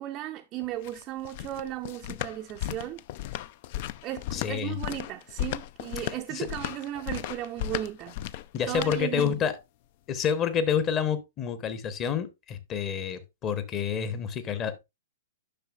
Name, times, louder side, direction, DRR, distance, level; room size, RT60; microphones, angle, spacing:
voice 1, 0.0-3.0 4.0-8.2 8.7-9.4, right 13 dB, 30° right, 0.5 m, -36 dB
sound 1, 0.6-9.5, left 13 dB, 40° left, 0.3 m, -36 dB
voice 2, 4.3-4.8 6.0-6.5 8.5-9.6 10.1-14.8, left 7 dB, 25° left, 0.9 m, -29 dB
10.0 x 6.1 x 2.4 m
figure-of-eight pair, 110°, 0 cm